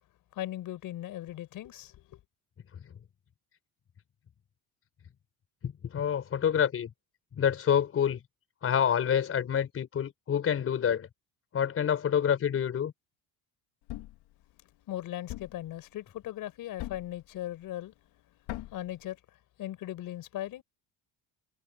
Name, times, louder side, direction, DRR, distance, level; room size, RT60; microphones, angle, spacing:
voice 1, 0.3-2.2 14.9-17.9 18.7-19.2 19.6-20.6, left 13 dB, 55° left, 6.4 m, -38 dB
voice 2, 5.6-6.9 7.4-8.2 8.6-11.1 11.5-12.9, left 8 dB, 35° left, 5.0 m, -27 dB
Thump thud, 13.9-14.3 15.3-15.7 16.8-17.2 18.5-18.9, left 16 dB, 75° left, 4.7 m, -40 dB
cardioid pair, 155°, 39 cm